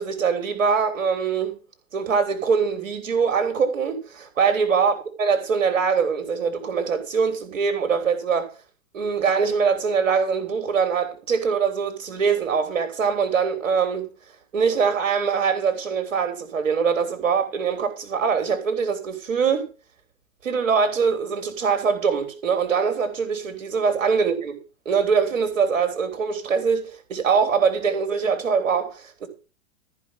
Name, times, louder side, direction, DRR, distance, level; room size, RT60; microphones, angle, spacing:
voice 1, 0.0-1.6 1.9-8.5 8.9-14.1 14.5-19.7 20.4-24.6 24.9-29.3, right 6 dB, 70° right, 3.8 m, -23 dB
14.0 x 5.5 x 8.0 m
hypercardioid pair, 110°, 39 cm